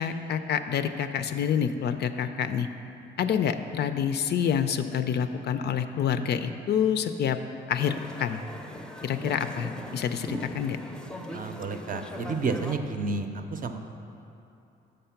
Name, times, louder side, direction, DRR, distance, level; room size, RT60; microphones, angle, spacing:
voice 1, 0.0-2.7 3.2-7.4 7.7-8.4 9.0-10.8, left 8 dB, 55° left, 9 dB, 0.4 m, -27 dB
sound 1, 7.8-12.8, left 1 dB, 5° left, 0.5 m, -39 dB
voice 2, 11.3-13.8, right 4 dB, 45° right, 6 dB, 0.6 m, -31 dB
6.7 x 5.1 x 5.7 m, 2.7 s
cardioid pair, 90°, 20 cm